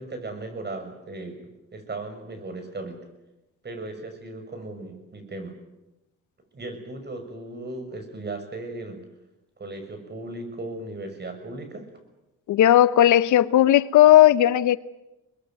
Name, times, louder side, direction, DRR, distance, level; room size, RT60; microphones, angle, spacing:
voice 1, 0.0-1.4 1.7-3.0 3.6-5.5 6.5-9.0 9.6-11.9, right 2 dB, 35° right, 6.7 m, -36 dB
voice 2, 12.5-14.8, left 12 dB, 75° left, 0.9 m, -16 dB
23.0 x 21.0 x 9.3 m
cardioid pair, 90°, 30 cm